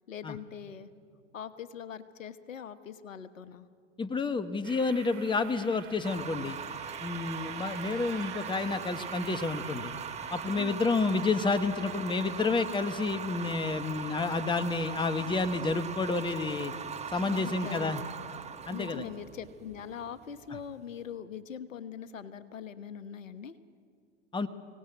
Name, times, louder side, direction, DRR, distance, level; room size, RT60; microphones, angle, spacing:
voice 1, 0.1-0.9 1.3-3.7 10.5-10.9 17.2-18.3 18.7-23.5, left 8 dB, 85° left, 12 dB, 1.3 m, -42 dB
voice 2, 4.0-6.6 7.0-9.9 10.3-16.7 17.1-18.0 18.7-19.1 24.3-24.5, left 3 dB, 10° left, 12 dB, 1.2 m, -30 dB
sound 1, 4.6-13.5, right 9 dB, 65° right, 2.3 m, -48 dB
sound 2, 6.0-21.0, right 6 dB, 15° right, 1.3 m, -40 dB
25.0 x 18.0 x 9.1 m, 2.1 s
hypercardioid pair, 100°, 38 cm